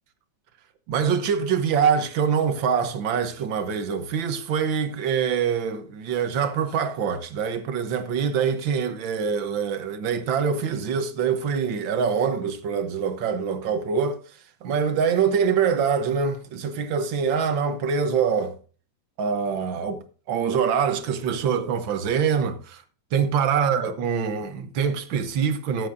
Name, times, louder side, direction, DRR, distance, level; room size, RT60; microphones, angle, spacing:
voice 1, 0.9-14.2 14.6-18.6 19.2-22.8 23.1-25.9, right 6 dB, 85° right, 1.8 m, -24 dB
16.5 x 8.3 x 2.6 m
omnidirectional pair, 2.0 m